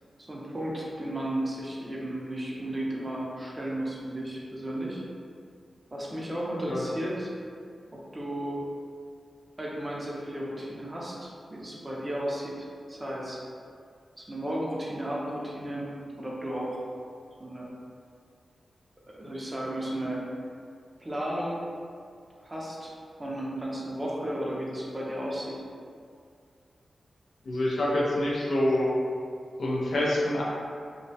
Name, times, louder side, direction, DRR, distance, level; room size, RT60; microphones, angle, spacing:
voice 1, 0.3-5.0 5.9-7.3 7.9-8.6 9.6-13.4 14.2-15.9 16.2-16.8 17.4-17.7 19.1-20.2 21.0-21.6 22.4-22.9 23.2-25.6, right 1 dB, 25° right, -4 dB, 0.5 m, -34 dB
voice 2, 27.4-28.9 29.6-30.4, left 1 dB, 75° left, -5 dB, 0.5 m, -26 dB
2.2 x 2.1 x 2.6 m, 2.3 s
cardioid pair, 70°, 0 cm